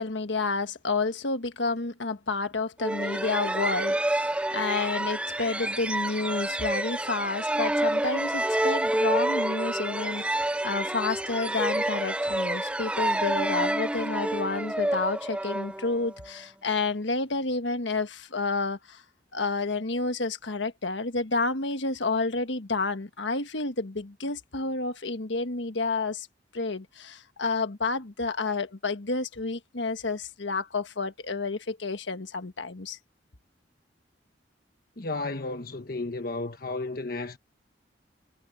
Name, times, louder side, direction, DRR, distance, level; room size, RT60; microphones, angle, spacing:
voice 1, 0.0-19.0 19.3-26.3 26.5-33.0, left 3 dB, 85° left, 1.5 m, -30 dB
sound 1, 2.8-16.3, right 1 dB, 5° right, 0.5 m, -28 dB
voice 2, 35.0-37.4, left 2 dB, 55° left, 1.3 m, -33 dB
head